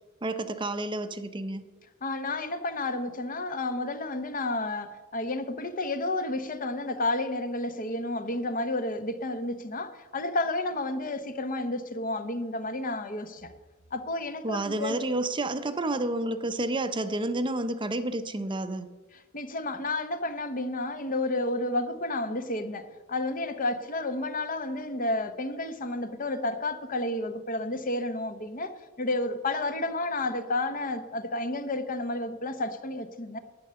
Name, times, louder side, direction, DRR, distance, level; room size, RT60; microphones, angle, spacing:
voice 1, 0.2-1.6 14.4-18.9, right 2 dB, 25° right, 0.6 m, -30 dB
voice 2, 2.0-13.5 13.9-15.0 19.3-33.4, left 2 dB, 40° left, 0.9 m, -31 dB
11.0 x 9.7 x 6.8 m
head